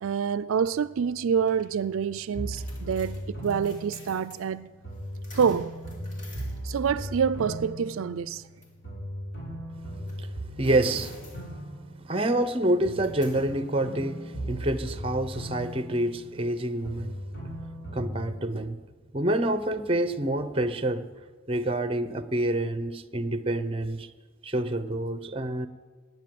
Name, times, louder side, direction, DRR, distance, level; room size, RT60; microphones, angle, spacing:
voice 1, 0.0-4.7 5.3-5.8 6.6-8.4, right 7 dB, 80° right, 0.4 m, -27 dB
sound 1, 0.6-15.3, left 1 dB, 35° left, 2.8 m, -51 dB
sound 2, 2.3-4.5 4.8-8.6 8.8-12.5 12.8-16.6 16.8-18.4, equal, 55° left, 6.5 m, -38 dB
voice 2, 10.6-11.2 12.0-17.1 17.9-18.8 19.1-21.1 21.5-24.1 24.4-25.7, right 1 dB, 25° right, 0.7 m, -27 dB
20.0 x 9.2 x 7.7 m
head